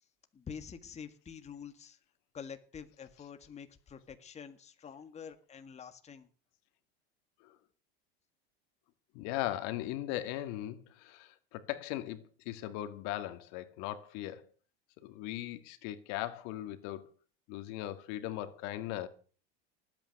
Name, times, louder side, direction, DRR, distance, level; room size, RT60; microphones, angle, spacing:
voice 1, 0.3-2.0 2.3-6.3, left 7 dB, 20° left, 1.8 m, -47 dB
voice 2, 9.1-14.5 15.0-17.1 17.5-19.1, left 14 dB, 60° left, 2.1 m, -38 dB
19.0 x 9.0 x 6.6 m
supercardioid pair, 130°, 31 cm